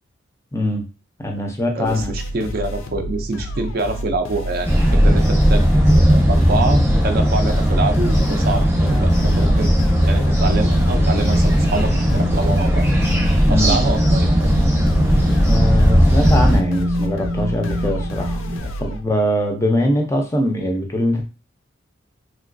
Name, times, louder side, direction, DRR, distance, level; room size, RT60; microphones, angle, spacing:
voice 1, 0.5-0.8 1.2-2.2 13.5-13.8 15.5-18.4 18.8-21.3, left 1 dB, 15° left, 2 dB, 0.4 m, -22 dB
sound 1, 1.8-19.0, equal, 80° left, 0.5 m, -30 dB
voice 2, 1.8-12.9 13.5-14.3 18.6-18.7, right 3 dB, 50° right, 6 dB, 0.4 m, -26 dB
sound 2, 4.6-16.6, equal, 15° right, 0.7 m, -16 dB
Wind, 8.6-18.6, equal, 90° right, 0.8 m, -27 dB
3.2 x 2.9 x 2.6 m, 0.31 s
head